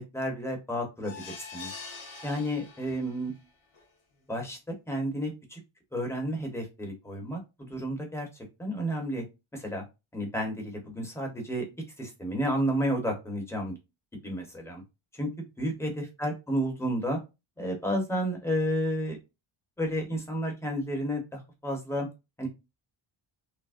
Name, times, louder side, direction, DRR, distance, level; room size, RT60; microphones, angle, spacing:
voice 1, 0.0-1.7 2.2-3.3 4.3-4.6 4.9-5.6 5.9-8.3 8.6-9.2 9.5-9.8 10.1-11.6 12.0-13.8 14.2-14.8 15.1-17.2 17.6-19.2 19.8-22.1 22.4-22.5, equal, 5° left, 0 dB, 1.1 m, -31 dB
sound 1, 1.0-3.3 3.7-3.8 4.2-4.3, left 4 dB, 80° left, 1.6 m, -44 dB
5.9 x 2.1 x 2.6 m, 0.26 s
wide cardioid pair, 155°, 48 cm